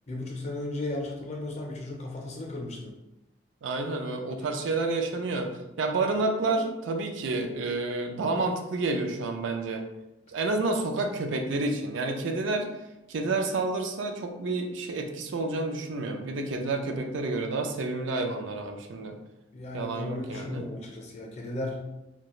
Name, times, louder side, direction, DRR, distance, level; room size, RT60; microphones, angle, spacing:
voice 1, 0.1-2.9 4.3-4.4 19.5-21.8, left 2 dB, 35° left, 0 dB, 0.5 m, -35 dB
voice 2, 3.6-5.5 5.8-9.9 10.3-12.7 13.1-19.2 19.7-20.6, right 3 dB, 80° right, 4 dB, 0.4 m, -29 dB
2.3 x 2.2 x 2.9 m, 0.94 s
head